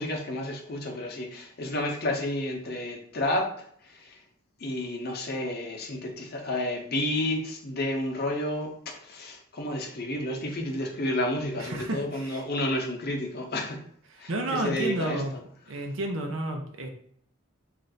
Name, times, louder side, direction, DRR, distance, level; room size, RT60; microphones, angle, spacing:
voice 1, 0.0-3.5 3.9-4.2 4.6-13.8 14.2-15.2, left 1 dB, 50° left, 2 dB, 0.7 m, -31 dB
voice 2, 11.6-12.4 14.1-15.3 15.7-16.9, right 1 dB, 70° right, 3 dB, 0.6 m, -31 dB
3.2 x 2.5 x 3.9 m, 0.63 s
head